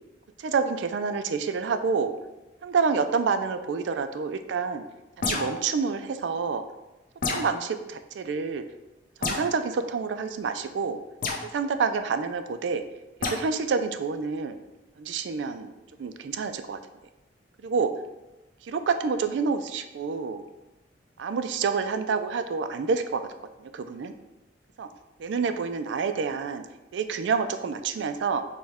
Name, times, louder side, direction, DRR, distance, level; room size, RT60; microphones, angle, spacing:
voice 1, 0.4-2.1 2.6-4.8 5.2-6.6 7.3-8.6 9.2-11.0 11.5-12.8 13.2-14.6 15.0-15.7 16.0-16.8 17.6-17.9 18.6-20.4 21.2-23.3 23.6-24.1 24.8-24.9 25.2-26.6 26.9-28.4, right 5 dB, 75° right, 9 dB, 0.3 m, -28 dB
sound 1, 5.2-5.7 7.2-7.6 9.2-9.5 11.2-11.5 13.2-13.4, left 3 dB, 50° left, 0.6 m, -29 dB
6.2 x 2.2 x 3.5 m, 1.0 s
head